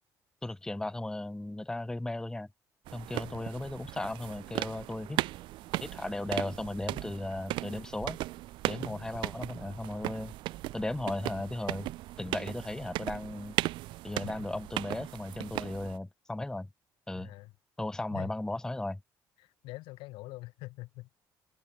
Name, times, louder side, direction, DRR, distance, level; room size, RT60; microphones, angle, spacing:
voice 1, 0.4-2.5 2.9-5.2 5.8-8.2 8.7-10.3 10.7-11.9 12.2-13.6 14.0-16.7 17.1-17.3 17.8-19.0, left 2 dB, 10° left, 0.5 m, -36 dB
sound 1, 2.9-16.0, right 17 dB, 80° right, 2.1 m, -37 dB
voice 2, 17.1-17.5 18.1-18.3 19.4-21.1, left 20 dB, 80° left, 1.7 m, -45 dB
supercardioid pair, 75°, 8 cm